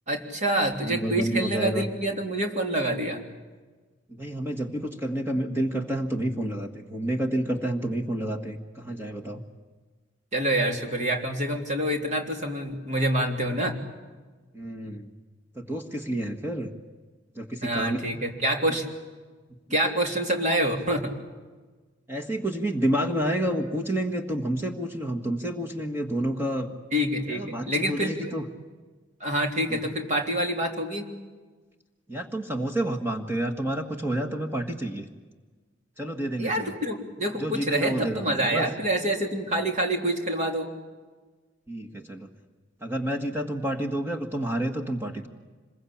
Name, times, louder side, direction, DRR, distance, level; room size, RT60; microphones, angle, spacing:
voice 1, 0.1-3.2 10.3-13.8 17.6-18.8 19.7-21.1 26.9-28.3 29.2-31.1 36.4-40.7, right 1 dB, 40° right, 3 dB, 3.4 m, -27 dB
voice 2, 0.8-1.9 4.1-9.4 14.5-15.1 15.5-16.7 17.3-18.0 22.1-26.7 27.3-28.4 29.7-30.0 32.1-35.1 36.0-36.7 37.4-38.7 41.7-42.3 42.8-45.3, right 1 dB, 10° right, 2 dB, 1.6 m, -29 dB
26.5 x 22.0 x 8.7 m, 1.3 s
head